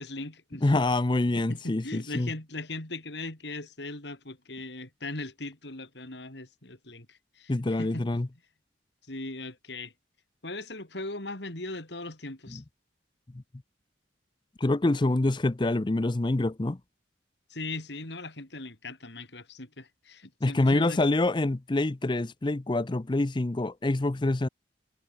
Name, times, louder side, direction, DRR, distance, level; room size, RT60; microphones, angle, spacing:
voice 1, 0.0-0.8 1.5-7.5 7.8-8.1 9.1-9.9 10.4-12.6 17.5-21.1, left 2 dB, 60° left, 3.6 m, -39 dB
voice 2, 0.6-2.3 7.5-8.3 12.5-12.6 14.6-16.8 20.4-24.5, left 2 dB, 25° left, 0.5 m, -26 dB
head